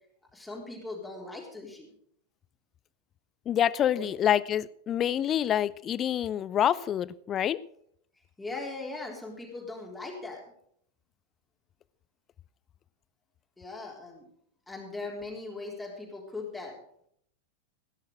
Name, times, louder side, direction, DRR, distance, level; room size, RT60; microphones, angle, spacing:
voice 1, 0.3-1.9 3.9-4.1 8.4-10.4 13.6-14.3 14.7-16.8, left 3 dB, 10° left, -2 dB, 3.8 m, -39 dB
voice 2, 3.5-7.6, left 10 dB, 30° left, 21 dB, 0.5 m, -27 dB
16.5 x 10.5 x 4.9 m, 0.68 s
figure-of-eight pair, 90°, 0 cm